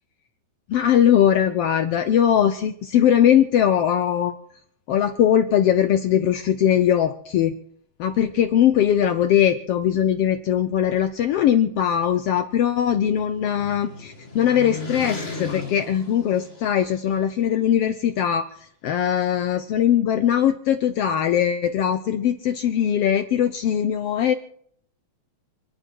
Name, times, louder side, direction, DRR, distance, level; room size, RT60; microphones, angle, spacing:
voice 1, 0.7-4.4 4.9-7.5 8.0-18.5 18.8-24.3, left 10 dB, 75° left, 9 dB, 1.4 m, -20 dB
sound 1, 12.3-17.1, left 4 dB, 25° left, 1.7 m, -36 dB
27.5 x 9.8 x 4.6 m, 0.66 s
omnidirectional pair, 3.5 m